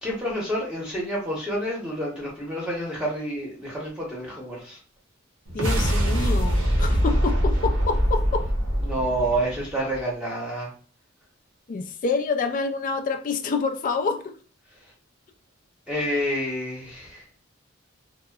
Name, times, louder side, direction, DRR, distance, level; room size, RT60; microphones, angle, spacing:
voice 1, 0.0-4.8 8.8-10.7 15.9-17.2, right 1 dB, 5° right, -4 dB, 0.8 m, -28 dB
voice 2, 5.5-8.5 11.7-14.4, left 4 dB, 40° left, 6 dB, 0.3 m, -27 dB
sound 1, 5.5-10.0, equal, 70° right, 0.7 m, -23 dB
2.7 x 2.0 x 2.2 m, 0.40 s
head